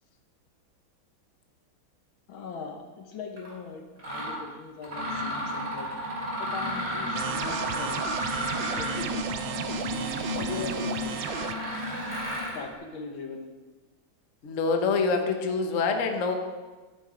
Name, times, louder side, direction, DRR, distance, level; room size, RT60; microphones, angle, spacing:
voice 1, 2.3-5.9 6.4-8.1 8.8-9.1 10.4-11.6 12.5-13.5, left 5 dB, 75° left, 3 dB, 2.0 m, -40 dB
Mechanisms, 3.4-3.5 4.0-4.4 4.8-12.6, equal, 50° right, 3.9 m, -32 dB
sound 1, 7.2-11.6, right 10 dB, 75° right, 1.1 m, -35 dB
voice 2, 14.4-16.3, left 4 dB, 45° left, 3 dB, 1.2 m, -26 dB
11.5 x 7.2 x 5.1 m, 1.3 s
omnidirectional pair, 2.2 m